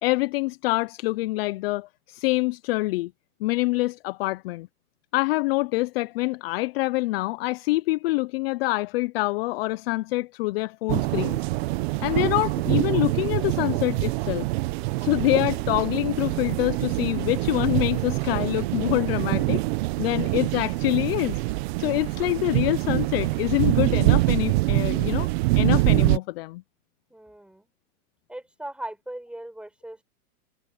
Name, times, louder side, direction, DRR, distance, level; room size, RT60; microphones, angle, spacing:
voice 1, 0.0-3.1 3.4-4.7 5.1-11.5 12.0-14.5 15.0-19.6 20.0-25.3 25.5-26.6, left 21 dB, 40° left, 0.7 m, -26 dB
sound 1, 10.9-26.2, right 21 dB, 45° right, 1.2 m, -25 dB
voice 2, 27.1-27.7 28.3-30.0, right 1 dB, ahead, 5.1 m, -39 dB
hypercardioid pair, 135°, 45 cm